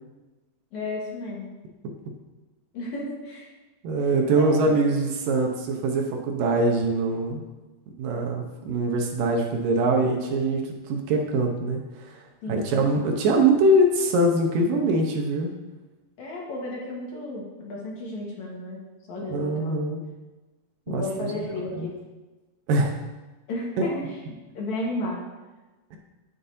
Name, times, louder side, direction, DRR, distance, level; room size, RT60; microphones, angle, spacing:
voice 1, 0.7-1.5 2.7-3.5 4.4-4.8 12.4-12.8 16.2-18.8 19.1-19.8 20.9-22.0 23.5-24.2 24.5-25.3, left 1 dB, 60° left, -3 dB, 2.5 m, -33 dB
voice 2, 3.8-7.4 8.0-11.8 12.5-15.5 19.2-20.0 20.9-21.3 21.8-21.9 22.7-23.0 25.9-26.0, right 2 dB, 75° right, 2 dB, 2.5 m, -23 dB
10.0 x 9.8 x 2.7 m, 1.2 s
omnidirectional pair, 4.1 m